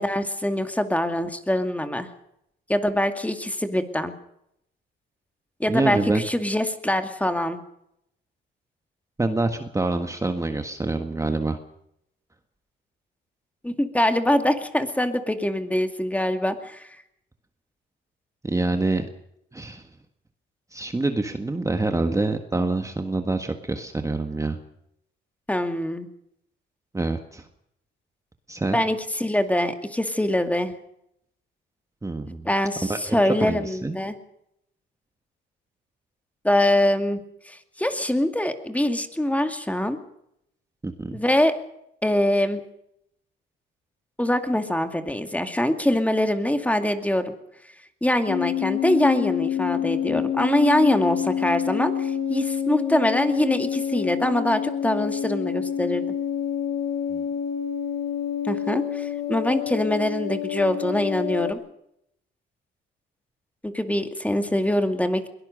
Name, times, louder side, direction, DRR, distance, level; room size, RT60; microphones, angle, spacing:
voice 1, 0.0-2.1 2.7-4.1 5.6-7.6 13.6-16.9 25.5-26.1 28.7-30.7 32.5-34.1 36.4-37.2 37.5-40.0 41.1-41.5 42.0-42.6 44.2-47.3 48.0-56.0 58.4-61.6 63.6-65.3, left 1 dB, 5° left, 7 dB, 2.3 m, -24 dB
voice 2, 5.7-6.2 9.2-11.6 18.4-19.1 19.5-19.8 20.7-24.6 26.9-27.5 28.5-28.8 32.0-32.5 32.9-33.9 40.8-41.2 57.1-57.3, right 2 dB, 15° right, 6 dB, 1.6 m, -26 dB
sound 1, 48.3-61.5, left 9 dB, 85° left, 1.9 m, -27 dB
22.0 x 18.0 x 6.6 m, 0.76 s
cardioid pair, 90°, 20 cm